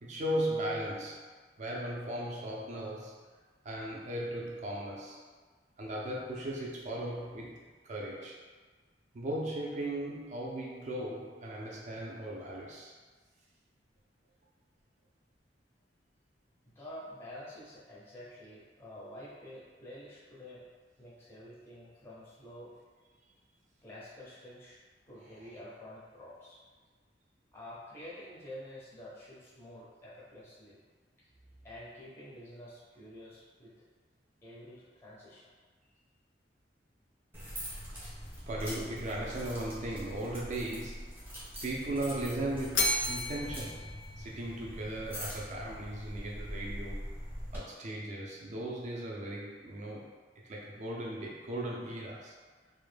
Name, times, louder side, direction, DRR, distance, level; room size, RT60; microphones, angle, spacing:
voice 1, 0.0-1.3 1.6-3.2 3.6-5.2 5.8-8.4 9.1-12.9 25.2-25.6 38.5-41.2 41.6-43.9 44.2-47.1 47.5-50.1 50.4-52.3, right 1 dB, 40° right, -3 dB, 0.4 m, -37 dB
voice 2, 16.7-20.7 21.0-22.7 23.8-24.8 25.1-26.6 27.5-30.8 31.6-33.8 34.4-35.5, left 1 dB, 15° left, -7 dB, 0.5 m, -49 dB
sound 1, 37.3-47.6, equal, 10° right, 0.7 m, -43 dB
Bell, 42.7-45.0, left 2 dB, 75° left, 0.4 m, -34 dB
2.1 x 2.0 x 3.1 m, 1.4 s
head